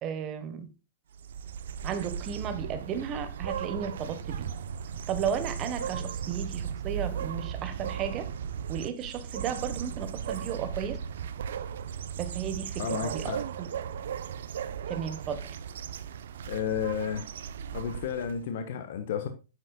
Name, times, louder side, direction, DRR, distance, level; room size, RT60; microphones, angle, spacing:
voice 1, 0.0-0.7 1.8-4.5 5.1-8.3 8.7-11.0 12.2-13.7 14.9-15.5, right 8 dB, 25° right, 1.5 m, -34 dB
sound 1, 1.1-18.4, right 8 dB, 75° right, 0.9 m, -36 dB
voice 2, 12.8-13.4 16.4-17.2 17.7-19.3, left 8 dB, 55° left, 1.4 m, -32 dB
9.7 x 7.7 x 2.4 m
supercardioid pair, 160°, 0 cm